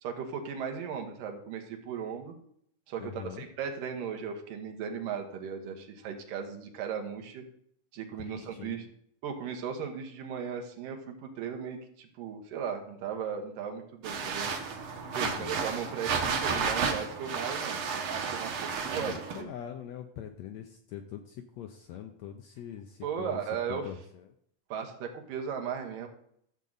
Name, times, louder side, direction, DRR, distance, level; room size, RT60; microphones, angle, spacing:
voice 1, 0.0-2.3 2.9-7.4 7.9-8.9 9.2-14.5 15.1-19.5 23.0-23.9 24.7-26.1, right 7 dB, 85° right, 3 dB, 3.0 m, -37 dB
voice 2, 3.0-3.5 8.2-8.9 15.2-15.6 19.0-23.4 23.7-24.3, left 9 dB, 80° left, 6 dB, 1.6 m, -43 dB
sound 1, 14.0-19.4, right 5 dB, 60° right, 1.5 m, -32 dB
12.5 x 7.4 x 4.0 m, 0.69 s
omnidirectional pair, 3.8 m